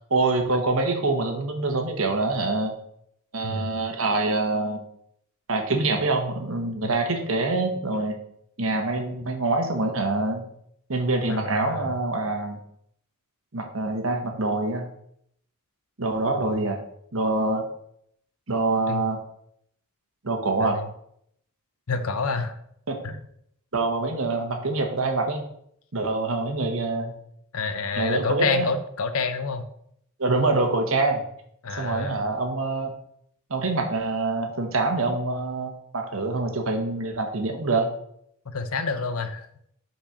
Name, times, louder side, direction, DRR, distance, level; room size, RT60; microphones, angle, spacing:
voice 1, 0.1-2.8 3.3-4.8 5.5-8.2 8.6-10.4 10.9-12.6 13.5-14.9 16.0-16.8 17.1-17.7 18.5-19.2 20.2-20.8 22.9-23.0 23.7-25.4 25.9-27.1 28.0-28.7 30.2-31.2 31.7-32.9 33.5-37.9, right 3 dB, 70° right, 4 dB, 1.3 m, -25 dB
voice 2, 3.4-3.7 6.8-6.9 11.3-11.9 16.4-16.7 18.9-19.0 20.6-20.9 21.9-22.6 23.0-23.2 27.5-29.6 31.6-32.1 38.5-39.5, left 4 dB, 80° left, 9 dB, 0.8 m, -28 dB
5.8 x 4.4 x 5.8 m, 0.71 s
head